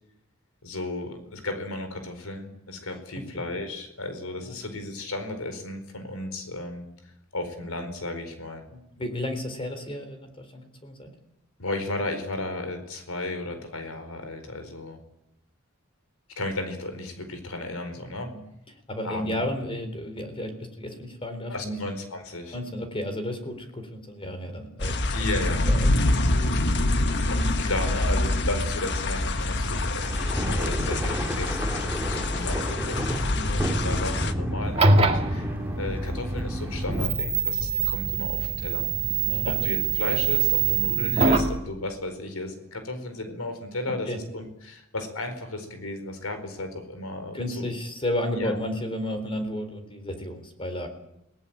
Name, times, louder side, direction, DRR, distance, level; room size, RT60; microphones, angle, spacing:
voice 1, 0.6-6.9 7.3-8.6 11.6-15.0 16.4-18.3 19.0-19.4 21.5-22.6 25.1-25.9 27.3-35.5 35.8-38.8 39.6-47.7 48.3-48.6, left 2 dB, 90° left, 8 dB, 4.7 m, -34 dB
voice 2, 3.1-3.4 4.4-4.6 8.7-11.1 18.3-18.4 18.9-21.8 22.5-25.0 25.6-26.6 33.3-33.5 39.2-39.6 43.9-44.2 47.3-50.9, left 1 dB, 25° left, 7 dB, 4.0 m, -33 dB
sound 1, 24.8-34.3, left 2 dB, 55° left, 1.6 m, -26 dB
sound 2, 29.6-37.1, right 1 dB, 10° right, 2.3 m, -31 dB
sound 3, 34.6-41.6, right 4 dB, 30° right, 2.3 m, -24 dB
28.0 x 18.5 x 9.0 m, 0.83 s
head